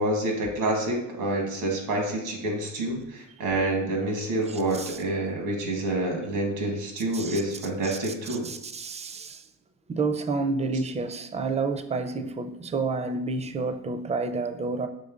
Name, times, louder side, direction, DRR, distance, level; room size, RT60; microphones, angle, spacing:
voice 1, 0.0-8.5, right 1 dB, 90° right, 1.1 m, -28 dB
voice 2, 4.5-5.0 7.1-9.5 9.9-14.9, right 4 dB, 20° right, 0.4 m, -30 dB
5.2 x 3.3 x 2.4 m
cardioid pair, 75°, 32 cm